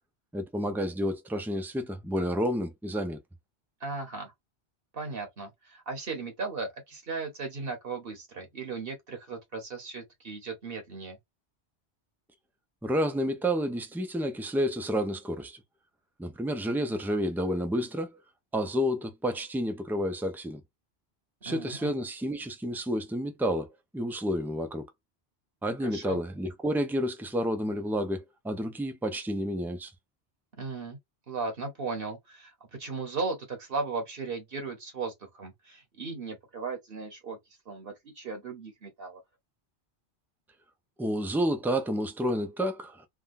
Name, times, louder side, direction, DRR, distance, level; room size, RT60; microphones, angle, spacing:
voice 1, 0.3-3.2 12.8-15.6 16.2-18.1 18.5-20.6 21.4-24.9 25.6-29.9 41.0-43.1, equal, 5° right, 0.3 m, -30 dB
voice 2, 3.8-4.3 4.9-11.2 21.4-21.9 25.8-26.2 30.6-31.0 31.3-37.4 37.7-39.2, right 4 dB, 55° right, 1.2 m, -36 dB
3.6 x 2.3 x 2.5 m
omnidirectional pair, 1.1 m